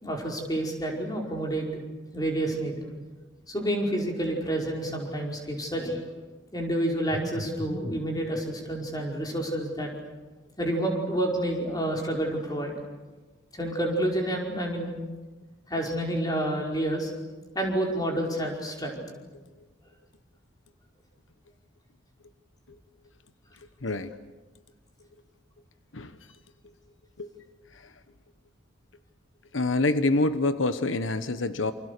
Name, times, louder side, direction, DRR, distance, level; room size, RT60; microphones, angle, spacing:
voice 1, 0.0-1.7 2.1-2.8 3.5-6.0 6.5-9.9 10.6-12.7 13.5-15.0 15.7-17.1 17.6-19.0, right 1 dB, 20° left, 0 dB, 5.1 m, -29 dB
voice 2, 23.8-24.2 25.9-26.2 27.2-27.3 27.7-27.9 29.5-31.7, left 2 dB, 90° left, 11 dB, 1.2 m, -26 dB
28.0 x 27.0 x 6.8 m, 1.3 s
head